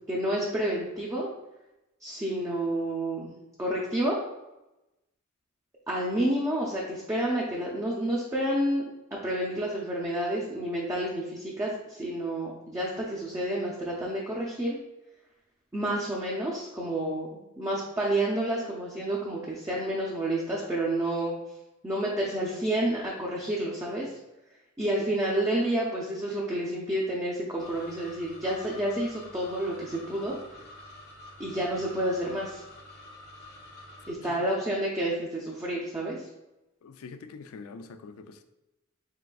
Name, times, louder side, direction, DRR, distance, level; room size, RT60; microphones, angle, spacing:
voice 1, 0.1-1.3 2.0-3.3 3.6-4.2 5.9-8.8 9.2-14.8 15.7-17.3 17.6-21.3 21.8-24.1 24.8-30.3 31.4-32.6 34.1-36.2, right 1 dB, 15° right, 0.5 m, -29 dB
sound 1, 27.6-34.1, left 1 dB, 50° left, 0.7 m, -48 dB
voice 2, 36.8-38.4, left 4 dB, 90° left, 0.4 m, -44 dB
4.2 x 3.7 x 2.3 m
head